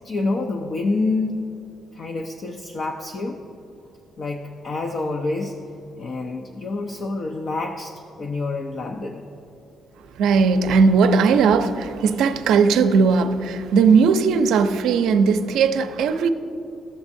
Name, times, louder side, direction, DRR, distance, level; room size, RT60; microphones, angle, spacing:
voice 1, 0.0-1.4 1.9-3.4 4.2-5.6 6.0-9.2, left 3 dB, 55° left, 0.5 m, -27 dB
voice 2, 10.0-16.3, right 5 dB, 85° right, 0.5 m, -18 dB
14.5 x 7.2 x 2.6 m
cardioid pair, 90°, 0 cm